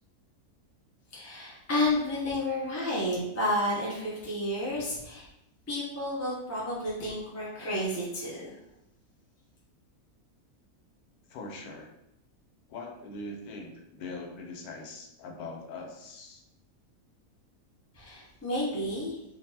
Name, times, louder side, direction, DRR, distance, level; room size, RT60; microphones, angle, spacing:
voice 1, 1.1-5.3 5.7-8.6 17.9-19.2, left 1 dB, 15° left, -6 dB, 0.5 m, -31 dB
voice 2, 11.3-11.9 12.7-16.4, left 2 dB, 85° left, 2 dB, 1.2 m, -42 dB
3.7 x 2.6 x 2.7 m, 0.83 s
omnidirectional pair, 1.6 m